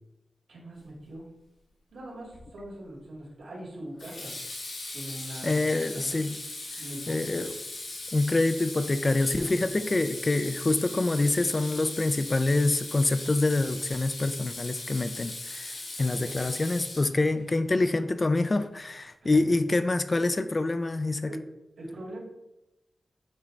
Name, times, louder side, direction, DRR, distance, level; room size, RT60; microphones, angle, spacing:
voice 1, 0.5-1.3 1.9-4.3 4.9-6.3 6.8-7.2 7.4-7.5 9.3-9.5 16.0-16.3 19.2-19.4 21.2-21.4 21.8-22.2, right 1 dB, 80° right, -4 dB, 2.4 m, -42 dB
Water tap faucet / Sink (filling or washing), 2.3-2.7 4.0-17.4, left 2 dB, 85° left, 1.5 m, -39 dB
voice 2, 5.4-6.4 6.7-6.8 7.1-7.5 8.1-21.3, left 2 dB, 30° left, 10 dB, 0.3 m, -26 dB
8.7 x 3.1 x 3.9 m, 0.92 s
wide cardioid pair, 125°, 0 cm